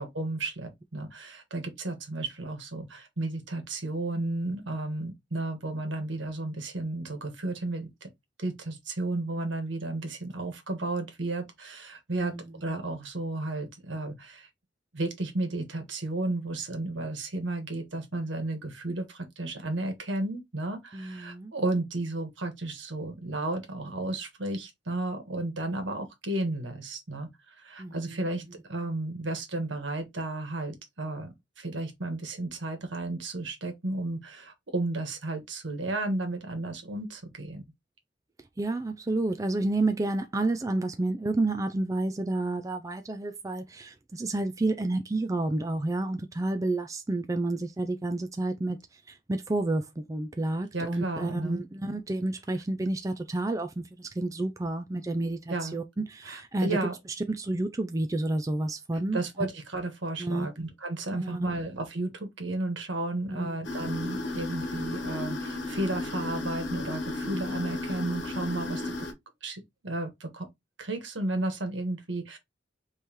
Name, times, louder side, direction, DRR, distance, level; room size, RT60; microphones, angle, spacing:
voice 1, 0.0-8.1 8.4-12.3 12.6-14.5 14.9-28.4 28.7-37.6 50.7-51.6 55.5-55.8 56.2-56.9 59.1-69.1 69.4-70.5 70.8-72.4, right 2 dB, 75° right, 1.5 m, -33 dB
voice 2, 20.9-21.5 27.8-28.2 38.6-48.8 49.1-56.8 57.3-59.2 60.2-60.5 61.1-61.5 63.3-63.6, right 2 dB, 15° right, 0.4 m, -30 dB
sound 1, 63.6-69.1, left 2 dB, 70° left, 1.2 m, -34 dB
5.3 x 3.2 x 3.0 m
head